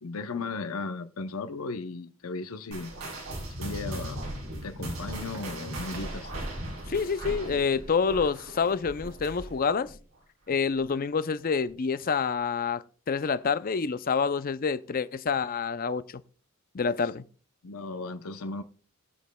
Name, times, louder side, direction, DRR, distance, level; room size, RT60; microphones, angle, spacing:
voice 1, 0.0-2.9 3.6-4.2 4.6-6.3 17.0-17.1 17.6-18.6, left 3 dB, 80° left, 0.7 m, -36 dB
sound 1, 2.7-9.6 9.8-10.2 10.7-10.8 11.6-11.7, right 1 dB, 90° right, 6.4 m, -38 dB
sound 2, 4.7-9.7, right 1 dB, 65° right, 2.4 m, -47 dB
voice 2, 6.9-9.9 10.5-16.2 16.7-17.2, left 5 dB, 40° left, 0.5 m, -27 dB
22.0 x 7.4 x 2.3 m
head